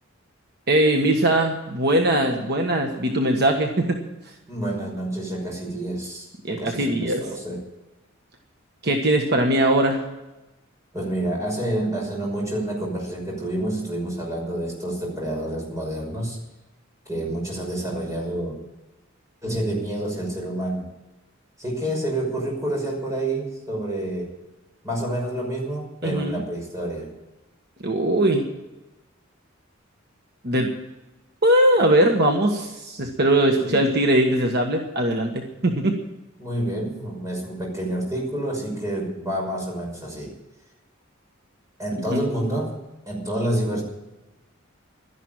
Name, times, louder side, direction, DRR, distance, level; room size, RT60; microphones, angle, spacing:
voice 1, 0.7-4.0 6.4-7.2 8.8-10.0 26.0-26.4 27.8-28.5 30.4-30.7 31.4-36.0 42.1-42.2, right 1 dB, 55° right, 3 dB, 1.4 m, -20 dB
voice 2, 4.5-7.6 10.9-16.4 17.1-18.6 19.4-20.9 21.6-24.3 24.8-27.1 33.5-33.8 36.4-40.3 41.8-42.8 43.1-43.8, right 1 dB, 15° right, -2 dB, 5.8 m, -28 dB
12.5 x 11.0 x 8.9 m, 1.0 s
head